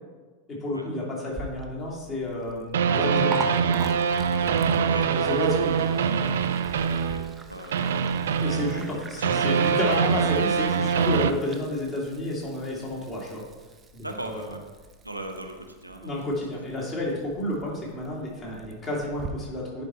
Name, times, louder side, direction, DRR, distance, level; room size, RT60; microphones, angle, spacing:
voice 1, 0.5-3.6 5.1-6.3 8.4-13.4 13.9-14.5 16.0-19.8, left 1 dB, 30° left, -3 dB, 2.4 m, -31 dB
Liquid, 1.3-19.3, right 3 dB, 20° right, 0.7 m, -43 dB
sound 1, 2.7-7.4 7.7-11.3, right 6 dB, 60° right, 0.4 m, -24 dB
voice 2, 4.8-5.1 7.0-7.2 7.5-7.9 8.7-9.5 14.0-14.6 15.0-16.2, right 1 dB, 85° right, 3 dB, 0.7 m, -38 dB
10.0 x 4.5 x 4.3 m, 1.3 s
figure-of-eight pair, 90°, 0 cm